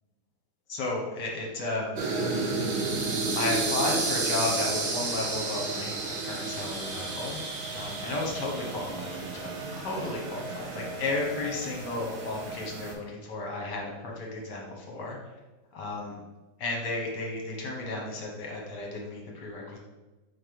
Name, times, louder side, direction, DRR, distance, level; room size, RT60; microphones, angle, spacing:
voice 1, 0.7-2.0 3.4-7.4 7.7-15.2 15.7-16.2 16.6-19.8, left 2 dB, 60° left, -1 dB, 1.7 m, -33 dB
sound 1, 2.0-12.9, right 3 dB, 80° right, 1.9 m, -32 dB
4.6 x 4.2 x 5.2 m, 1.2 s
omnidirectional pair, 2.2 m